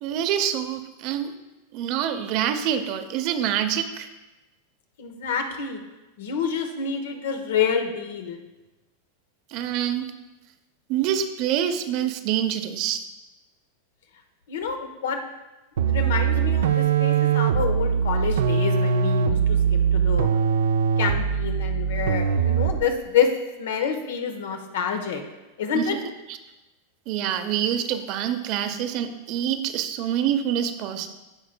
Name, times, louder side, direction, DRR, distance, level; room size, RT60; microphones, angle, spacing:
voice 1, 0.0-1.3 1.7-4.1 9.5-10.1 10.9-13.0 25.7-26.0 26.3-26.4 27.1-31.1, right 10 dB, 50° right, 8 dB, 0.7 m, -26 dB
voice 2, 5.0-5.8 6.2-8.4 14.5-15.2 15.8-20.3 21.0-23.3 23.6-25.2 25.6-26.0, left 6 dB, 85° left, 5 dB, 1.0 m, -27 dB
sound 1, 15.8-22.9, right 7 dB, 85° right, 0.4 m, -22 dB
14.5 x 4.9 x 2.2 m, 1.1 s
supercardioid pair, 135°, 0 cm